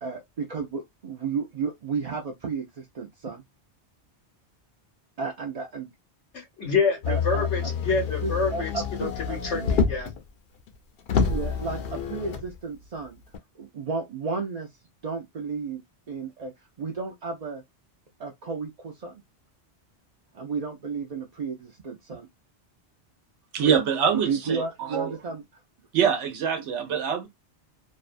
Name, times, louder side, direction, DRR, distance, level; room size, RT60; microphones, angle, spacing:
voice 1, 0.0-3.4 5.2-5.9 7.1-9.7 11.3-13.2 13.6-14.7 15.0-15.8 16.1-16.5 16.8-17.6 18.2-19.1 20.3-22.3 23.6-23.8 24.2-25.4 26.6-26.7, right 5 dB, 50° right, 0.5 m, -33 dB
voice 2, 6.3-8.7 9.0-10.1, left 4 dB, 90° left, 1.1 m, -27 dB
Motor vehicle (road), 7.0-10.2 10.7-10.8 11.1-12.5 13.3-13.4, left 5 dB, 60° left, 0.7 m, -27 dB
voice 3, 23.5-25.1 25.9-27.3, right 7 dB, 85° right, 0.9 m, -25 dB
2.6 x 2.2 x 2.4 m
omnidirectional pair, 1.2 m